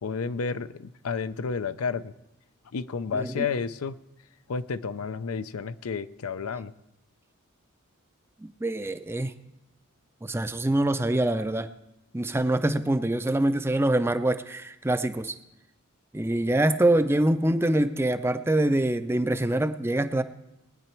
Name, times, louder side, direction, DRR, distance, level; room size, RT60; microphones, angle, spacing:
voice 1, 0.0-2.1 2.7-4.0 4.5-6.7, left 5 dB, 85° left, 13 dB, 0.5 m, -31 dB
voice 2, 3.1-3.5 8.4-9.3 10.2-11.7 12.1-15.4 16.1-20.2, right 1 dB, 10° right, 11 dB, 0.4 m, -25 dB
19.5 x 9.8 x 4.5 m, 0.93 s
head